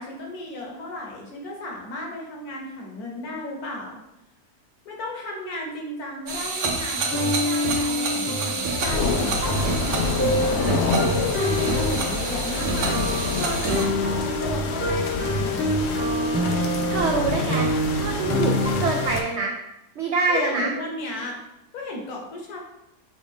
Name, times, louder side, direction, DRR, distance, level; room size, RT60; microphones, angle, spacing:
voice 1, 0.0-4.0 4.8-10.6 11.0-13.1 13.4-15.7 20.3-21.4 21.7-22.6, left 2 dB, 65° left, -1 dB, 1.4 m, -34 dB
sound 1, 6.3-13.9, right 4 dB, 70° right, 1.2 m, -28 dB
sound 2, 7.0-19.2, equal, 10° left, 0.8 m, -27 dB
sound 3, 8.8-19.2, left 4 dB, 85° left, 0.5 m, -28 dB
voice 2, 16.9-19.5 20.0-20.7, right 4 dB, 85° right, 1 dB, 0.6 m, -25 dB
6.0 x 2.5 x 3.5 m, 0.89 s
omnidirectional pair, 1.7 m